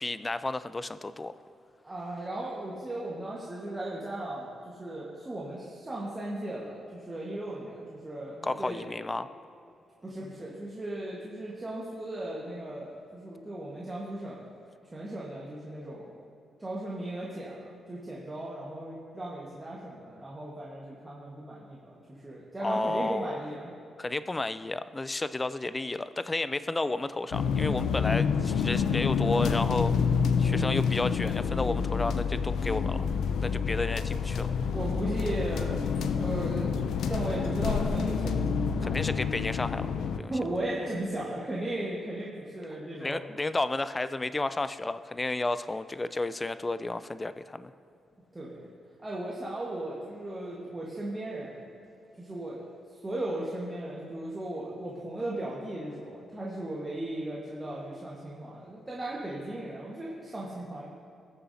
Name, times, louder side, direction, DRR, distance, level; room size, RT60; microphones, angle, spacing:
voice 1, 0.0-1.3 8.4-9.3 22.6-23.4 24.0-29.9 30.4-33.0 33.4-34.5 38.8-40.3 42.9-47.7, left 2 dB, 20° left, 13 dB, 0.3 m, -32 dB
voice 2, 1.8-8.8 10.0-14.4 14.8-16.1 16.6-23.7 34.7-36.8 37.1-38.9 40.3-43.3 48.3-48.6 49.0-51.7 52.2-52.7 53.0-60.8, right 1 dB, 20° right, -6 dB, 1.4 m, -36 dB
sound 1, 27.3-40.2, left 6 dB, 80° left, 0.5 m, -28 dB
19.0 x 7.0 x 2.8 m, 2.6 s
cardioid pair, 115°, 0 cm